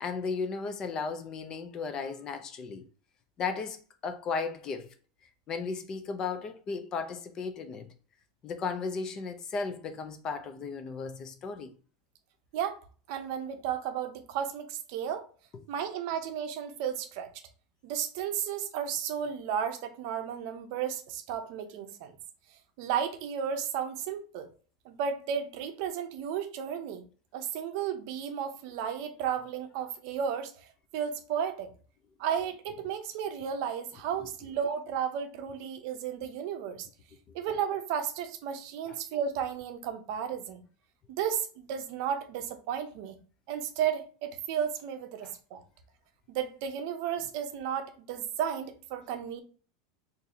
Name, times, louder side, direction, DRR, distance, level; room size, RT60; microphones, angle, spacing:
voice 1, 0.0-2.9 3.4-4.9 5.5-7.9 8.4-11.7 38.9-39.0 45.2-45.3, left 4 dB, 25° left, 0.4 m, -35 dB
voice 2, 13.1-15.3 15.7-17.3 17.8-22.1 22.8-24.5 24.9-27.0 27.3-30.6 30.9-31.7 32.2-36.9 37.3-40.6 41.2-43.2 43.5-45.6 46.3-49.4, right 8 dB, 55° right, 0.6 m, -33 dB
2.7 x 2.5 x 4.0 m
supercardioid pair, 160°, 2 cm